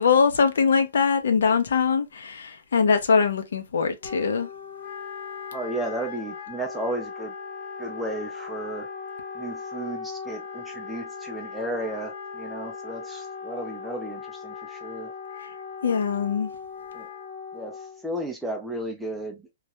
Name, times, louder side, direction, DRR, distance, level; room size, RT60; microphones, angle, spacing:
voice 1, 0.0-4.5 15.8-16.5, left 5 dB, 80° left, 0.6 m, -22 dB
Wind instrument woodwind instrument, 4.0-18.1, left 5 dB, 40° left, 0.7 m, -38 dB
voice 2, 5.5-7.3 7.8-8.9 9.3-15.1 16.9-17.1 17.5-17.8 18.0-19.4, right 1 dB, 5° right, 0.4 m, -33 dB
2.4 x 2.1 x 2.7 m
hypercardioid pair, 170°, 0 cm